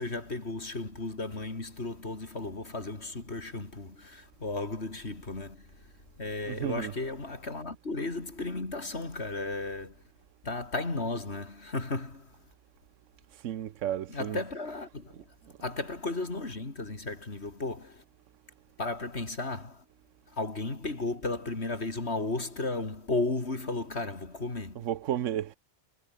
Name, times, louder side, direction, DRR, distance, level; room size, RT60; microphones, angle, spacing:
voice 1, 0.0-5.8 6.2-10.0 10.4-12.3 14.1-15.2 15.6-18.0 18.8-19.8 20.3-24.9, left 2 dB, 60° left, 3.7 m, -34 dB
voice 2, 6.5-6.9 13.4-14.4 24.7-25.6, right 11 dB, 85° right, 1.1 m, -32 dB
omnidirectional pair, 1.3 m